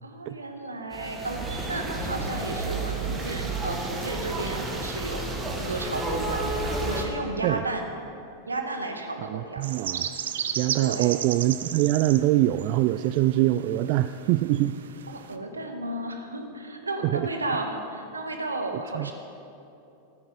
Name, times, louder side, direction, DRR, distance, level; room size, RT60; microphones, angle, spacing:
voice 1, 0.0-5.2 5.6-7.9 8.5-9.6 10.8-11.1 15.1-19.1, right 2 dB, 80° right, 4 dB, 1.5 m, -33 dB
sound 1, 0.9-7.0, right 2 dB, 20° right, 2.4 m, -31 dB
voice 2, 9.2-10.1 10.6-14.8 17.0-17.3 18.9-19.1, right 15 dB, 45° right, 12 dB, 0.3 m, -24 dB
sound 2, 9.6-15.3, right 9 dB, 60° right, 0.7 m, -35 dB
14.0 x 13.0 x 5.3 m, 2.7 s
figure-of-eight pair, 90°, 0 cm